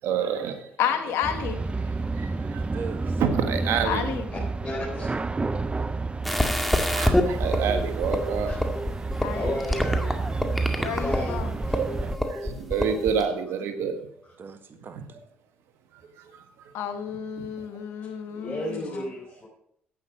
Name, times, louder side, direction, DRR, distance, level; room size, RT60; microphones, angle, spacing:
voice 1, 0.0-0.6 2.1-2.7 3.2-4.1 6.9-8.8 10.7-10.9 11.7-14.0 14.9-15.1 15.9-16.4 17.4-17.5, right 6 dB, 75° right, 8 dB, 1.5 m, -28 dB
voice 2, 0.8-1.6 3.8-4.3 9.2-9.4 10.8-11.5 16.7-19.0, left 8 dB, 80° left, 7 dB, 1.5 m, -30 dB
sound 1, 1.2-12.2, right 3 dB, 25° right, 0.7 m, -30 dB
voice 3, 2.5-3.2 7.5-7.6 14.4-15.2, right 6 dB, 55° right, 9 dB, 1.6 m, -40 dB
voice 4, 4.6-5.1 8.5-8.6 9.3-10.2 10.7-11.4 11.6-11.7 14.2-14.3 18.3-19.5, left 1 dB, 30° left, -4 dB, 4.2 m, -33 dB
sound 2, 6.2-13.2, left 1 dB, ahead, 2.0 m, -27 dB
11.0 x 8.9 x 5.0 m, 0.71 s
supercardioid pair, 55°, 4 cm